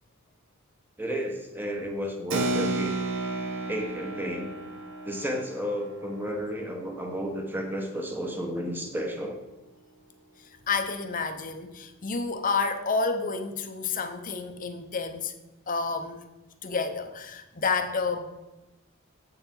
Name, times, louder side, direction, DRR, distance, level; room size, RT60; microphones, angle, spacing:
voice 1, 1.0-2.9 3.7-4.5 5.0-9.4, equal, 10° right, 2 dB, 1.1 m, -32 dB
Keyboard (musical), 2.3-8.3, right 2 dB, 60° right, 0.8 m, -33 dB
voice 2, 10.4-15.3 15.7-16.2 16.6-18.2, left 4 dB, 40° left, 7 dB, 0.8 m, -30 dB
8.2 x 7.0 x 3.8 m, 1.0 s
head